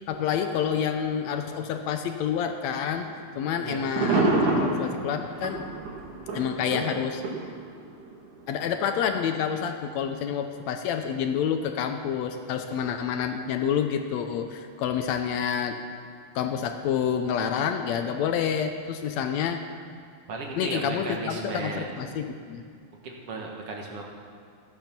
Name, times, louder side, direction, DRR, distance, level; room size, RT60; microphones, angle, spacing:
voice 1, 0.1-3.1 3.4-5.7 6.3-7.2 8.5-15.8 16.4-19.6 20.6-22.6, left 8 dB, 75° left, 6 dB, 1.8 m, -28 dB
sound 1, 2.7-3.0 3.5-3.6 3.8-8.2 8.9-9.0, right 2 dB, 85° right, 3.2 m, -27 dB
voice 2, 20.3-21.8 23.0-24.0, right 3 dB, 60° right, 0 dB, 2.0 m, -35 dB
14.0 x 8.8 x 5.9 m, 2.2 s
omnidirectional pair, 3.4 m